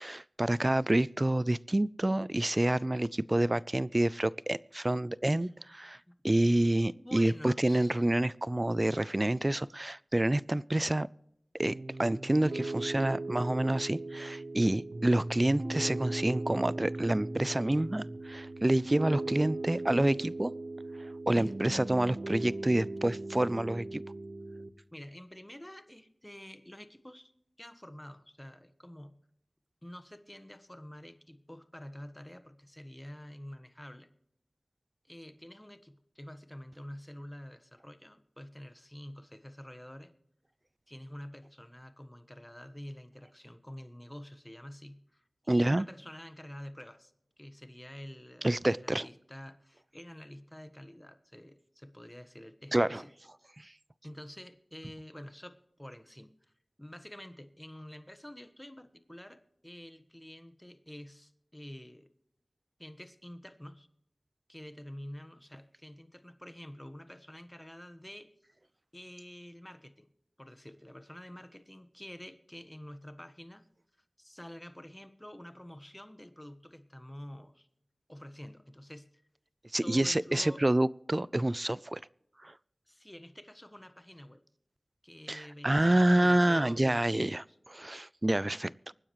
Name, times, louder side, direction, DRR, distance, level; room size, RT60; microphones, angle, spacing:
voice 1, 0.0-6.0 6.2-11.1 11.6-20.5 21.0-24.0 45.5-45.9 48.4-49.1 52.7-53.0 53.6-53.7 79.7-82.0 82.4-82.5 85.3-87.4 87.7-88.9, right 1 dB, 30° right, 21 dB, 0.4 m, -28 dB
voice 2, 6.7-8.0 21.3-21.5 24.9-27.3 27.6-29.2 29.8-34.1 35.0-40.1 40.9-47.1 47.4-53.1 54.0-56.3 56.8-62.1 62.8-63.9 64.5-68.3 68.9-70.1 70.4-73.6 74.2-77.7 78.1-79.2 79.8-80.6 82.9-84.4 85.0-87.4, equal, 15° left, 10 dB, 1.3 m, -48 dB
Piano, 11.6-24.7, right 2 dB, 75° right, 1.1 m, -38 dB
24.5 x 9.8 x 3.1 m, 0.76 s
wide cardioid pair, 40°, 0 cm